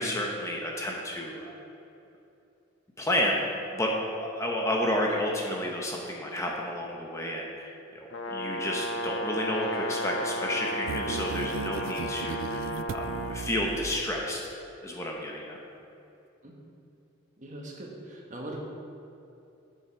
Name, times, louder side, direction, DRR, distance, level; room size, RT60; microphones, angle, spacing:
voice 1, 0.0-1.5 3.0-14.4 14.8-15.6, left 1 dB, 15° left, -1 dB, 0.9 m, -31 dB
Brass instrument, 8.1-13.4, equal, 60° left, 1.0 m, -33 dB
sound 1, 10.9-14.6, right 6 dB, 70° right, 0.3 m, -37 dB
voice 2, 17.4-18.6, right 1 dB, 40° right, -1 dB, 1.3 m, -41 dB
8.6 x 7.1 x 4.6 m, 2.8 s
head